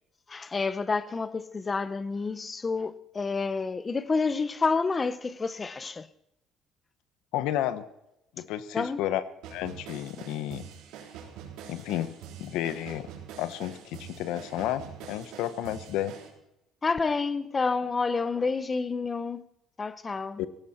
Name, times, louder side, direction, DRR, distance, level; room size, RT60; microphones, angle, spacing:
voice 1, 0.3-6.1 8.7-9.0 16.8-19.4 19.8-20.4, left 4 dB, 15° left, 0.6 m, -29 dB
voice 2, 7.3-7.8 8.4-9.2 9.5-10.7 11.7-12.1 12.4-13.1 13.4-16.1 20.4-20.5, left 12 dB, 75° left, 1.1 m, -31 dB
sound 1, 9.4-16.3, right 8 dB, 80° right, 3.7 m, -45 dB
17.5 x 16.5 x 4.4 m
cardioid pair, 175°, 0 cm